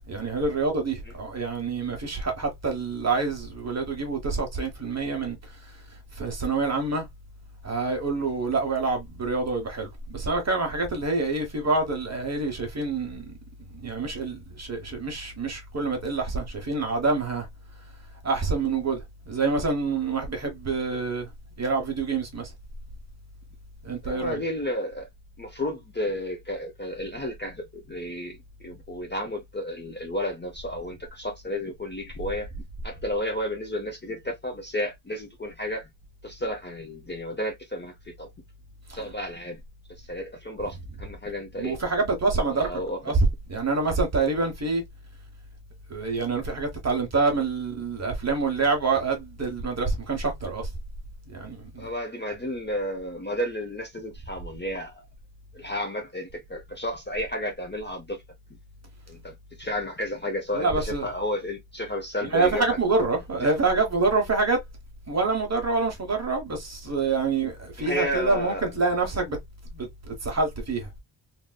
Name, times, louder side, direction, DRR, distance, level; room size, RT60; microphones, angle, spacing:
voice 1, 0.0-5.8 6.1-7.1 7.6-13.3 13.6-17.5 18.2-21.3 21.6-22.5 23.8-24.4 38.9-39.0 41.6-42.7 43.0-43.2 43.5-44.8 45.9-50.7 51.3-51.9 60.5-61.1 62.2-64.6 65.1-69.4 69.7-70.9, right 3 dB, 35° right, 1.0 m, -27 dB
voice 2, 24.0-25.1 25.4-32.5 32.8-35.9 36.2-38.3 38.9-39.6 40.0-41.8 42.5-43.1 51.8-55.0 55.5-58.2 59.1-62.8 67.8-68.6, left 1 dB, 25° left, 0.6 m, -32 dB
3.5 x 2.6 x 2.2 m
wide cardioid pair, 160°, 48 cm